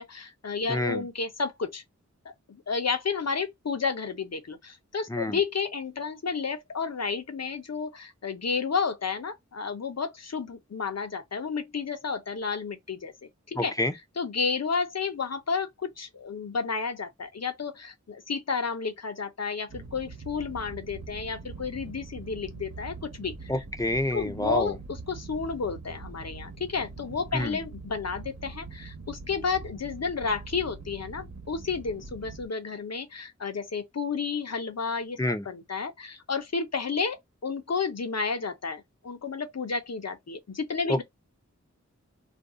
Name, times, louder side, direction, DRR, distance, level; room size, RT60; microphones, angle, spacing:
voice 1, 0.0-1.8 2.2-13.1 13.5-13.7 14.2-23.6 24.1-35.2 35.5-41.0, left 5 dB, 60° left, 0.7 m, -31 dB
voice 2, 0.7-1.1 5.1-5.4 13.6-13.9 23.5-24.8 27.3-27.6 35.2-35.4 40.9-41.0, left 1 dB, 10° left, 0.5 m, -28 dB
sound 1, 19.7-32.4, right 3 dB, 60° right, 1.0 m, -43 dB
2.6 x 2.3 x 3.6 m
wide cardioid pair, 70°, 29 cm